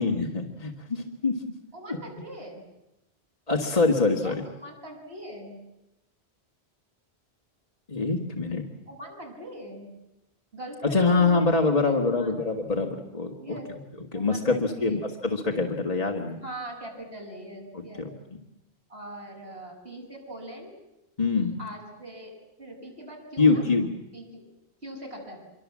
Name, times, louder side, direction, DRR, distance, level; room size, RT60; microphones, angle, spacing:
voice 1, 0.0-1.4 1.9-2.0 3.5-4.4 7.9-8.6 10.9-13.6 14.1-16.4 17.7-18.1 21.2-21.6 23.4-23.9, left 3 dB, 35° left, 1 dB, 2.1 m, -24 dB
voice 2, 1.7-2.6 4.2-5.6 8.9-9.9 10.5-12.3 13.4-13.7 14.1-15.1 16.4-18.0 18.9-20.7 21.6-22.3 22.6-23.7 24.1-24.4 24.8-25.4, right 1 dB, 70° right, 0 dB, 7.7 m, -41 dB
26.0 x 24.5 x 7.6 m, 0.91 s
omnidirectional pair, 1.1 m